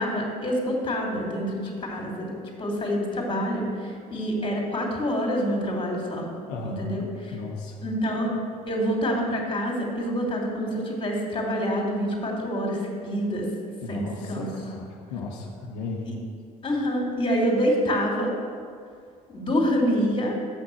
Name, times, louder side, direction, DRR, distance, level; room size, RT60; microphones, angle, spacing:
voice 1, 0.0-6.3 6.6-7.3 7.8-8.3 8.7-13.5 13.9-14.5 16.0-16.1 16.6-18.3 19.3-20.4, equal, 25° left, 0 dB, 2.6 m, -27 dB
voice 2, 6.5-6.9 7.3-7.8 13.8-16.1, left 3 dB, 75° left, -1 dB, 1.0 m, -35 dB
7.1 x 6.0 x 7.6 m, 2.3 s
hypercardioid pair, 65°, 19 cm